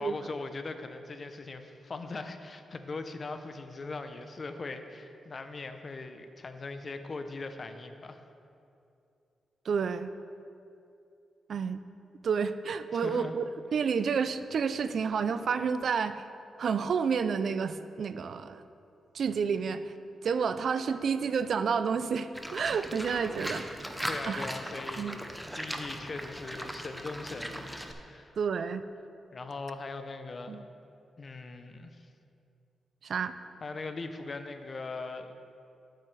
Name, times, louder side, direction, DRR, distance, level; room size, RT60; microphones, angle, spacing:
voice 1, 0.0-8.2 12.9-13.3 24.1-25.2 25.5-27.8 28.0-28.4 29.3-30.6 31.2-32.1 33.6-35.3, left 3 dB, 40° left, 8 dB, 0.6 m, -40 dB
voice 2, 9.7-10.1 11.5-11.8 12.2-13.4 13.7-16.3 16.6-18.6 19.1-19.9 20.2-23.7 24.3-24.4 25.0-25.2 28.4-28.8 30.5-30.6 33.0-33.4, right 6 dB, 60° right, 12 dB, 0.4 m, -30 dB
Livestock farm animals working animals, 22.3-27.9, equal, ahead, 0.7 m, -38 dB
13.0 x 7.6 x 3.3 m, 2.6 s
cardioid pair, 105°, 0 cm